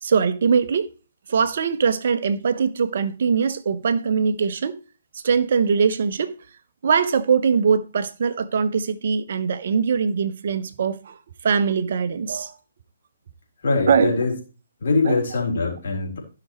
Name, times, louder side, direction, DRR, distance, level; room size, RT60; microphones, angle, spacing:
voice 1, 0.0-0.9 1.3-4.8 5.2-6.4 6.8-11.2 11.4-12.6 13.9-14.2 15.0-15.2, right 6 dB, 55° right, 0.9 m, -21 dB
voice 2, 13.6-14.3 14.8-16.2, left 3 dB, 60° left, 4.0 m, -22 dB
15.5 x 5.9 x 3.1 m
figure-of-eight pair, 135°, 0 cm